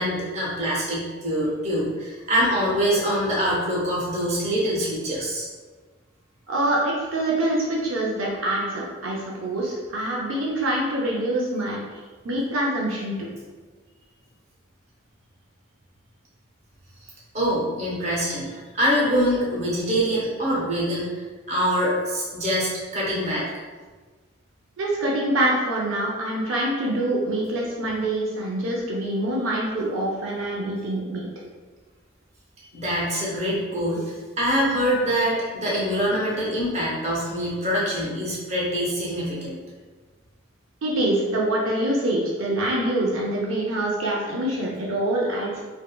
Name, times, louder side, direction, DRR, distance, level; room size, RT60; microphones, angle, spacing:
voice 1, 0.0-5.5 17.3-21.1 21.5-23.4 32.7-39.6, equal, 35° right, -6 dB, 0.7 m, -24 dB
voice 2, 6.5-11.8 12.2-13.3 24.8-31.3 40.8-45.6, right 1 dB, 75° right, -3 dB, 0.4 m, -25 dB
3.4 x 2.1 x 2.2 m, 1.4 s
head